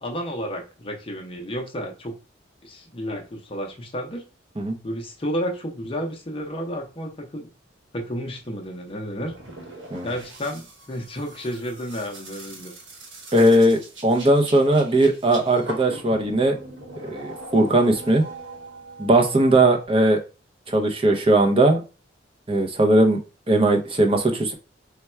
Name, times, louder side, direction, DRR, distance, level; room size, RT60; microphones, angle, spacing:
voice 1, 0.0-2.1 2.6-4.2 4.8-7.5 7.9-9.3 10.0-12.7 19.5-19.6, equal, 30° left, 2 dB, 0.6 m, -31 dB
sound 1, 8.4-19.9, right 1 dB, 75° right, 1.3 m, -41 dB
voice 2, 13.3-16.5 17.1-18.2 19.0-20.2 20.7-21.8 22.5-23.2 23.5-24.5, right 1 dB, 30° right, 3 dB, 0.6 m, -19 dB
3.4 x 2.2 x 4.3 m, 0.32 s
head